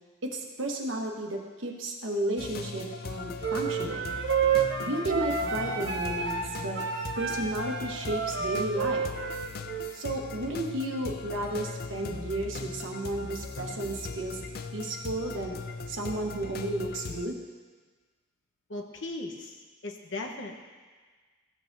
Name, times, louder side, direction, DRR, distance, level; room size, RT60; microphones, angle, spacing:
voice 1, 0.2-4.1 4.8-6.8 7.2-9.1 9.9-14.4 14.7-15.6 15.9-17.4, right 1 dB, 80° right, 1 dB, 1.2 m, -33 dB
sound 1, 2.4-17.3, left 4 dB, 50° left, 0.4 m, -39 dB
sound 2, 3.4-9.9, right 6 dB, 65° right, 0.8 m, -30 dB
voice 2, 18.7-20.6, left 2 dB, 70° left, 2 dB, 1.0 m, -38 dB
14.5 x 7.6 x 2.6 m, 1.4 s
head